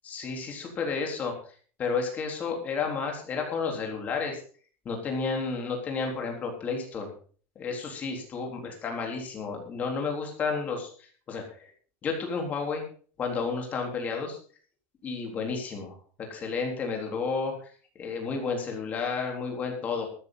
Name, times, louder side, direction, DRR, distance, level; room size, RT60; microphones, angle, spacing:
voice 1, 0.0-4.4 4.8-7.1 7.6-11.7 12.0-12.9 13.2-14.4 15.0-17.7 18.0-20.1, left 4 dB, 20° left, 2 dB, 4.0 m, -32 dB
14.0 x 13.5 x 4.1 m, 0.43 s
supercardioid pair, 175°, 7 cm